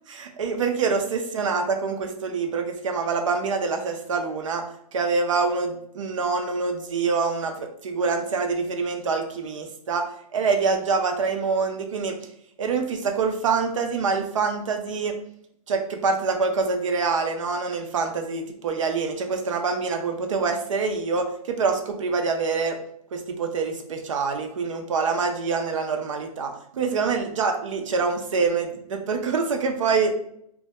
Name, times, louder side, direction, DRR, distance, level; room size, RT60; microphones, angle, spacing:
voice 1, 0.1-4.6 4.9-12.2 12.6-15.2 15.7-22.8 23.1-30.1, right 4 dB, 55° right, 4 dB, 0.4 m, -25 dB
2.1 x 2.1 x 2.8 m, 0.70 s
hypercardioid pair, 175°, 20 cm